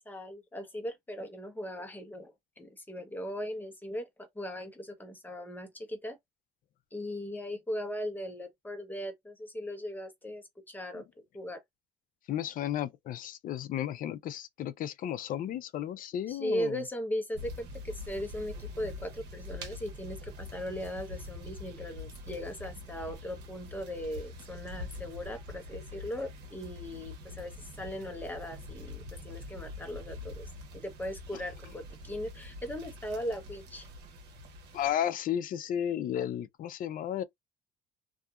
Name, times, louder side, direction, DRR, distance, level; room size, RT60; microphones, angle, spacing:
voice 1, 0.1-4.1 4.3-6.2 6.9-11.0 11.3-11.6 16.3-33.9, equal, 10° left, 0.9 m, -38 dB
voice 2, 12.3-16.8 34.7-37.2, left 10 dB, 55° left, 0.4 m, -33 dB
sound 1, 17.3-34.9, left 2 dB, 75° right, 0.9 m, -45 dB
2.7 x 2.4 x 2.4 m
cardioid pair, 110°, 17 cm